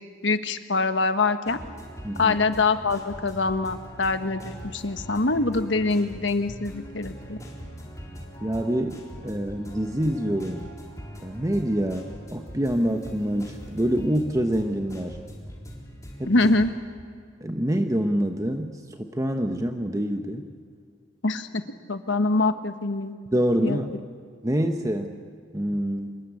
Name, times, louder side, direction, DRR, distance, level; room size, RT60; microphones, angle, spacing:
voice 1, 0.2-1.6 2.1-7.4 16.3-16.7 21.2-21.5 21.9-23.1 23.6-23.8, left 3 dB, 70° left, 9 dB, 1.4 m, -24 dB
sound 1, 1.5-16.7, equal, 15° left, 3.9 m, -42 dB
voice 2, 2.0-2.4 8.4-10.7 11.2-15.2 16.2-16.3 17.4-20.5 23.3-23.9 24.4-25.2 25.5-26.2, equal, 15° right, 5 dB, 1.1 m, -26 dB
25.5 x 22.0 x 8.4 m, 2.1 s
head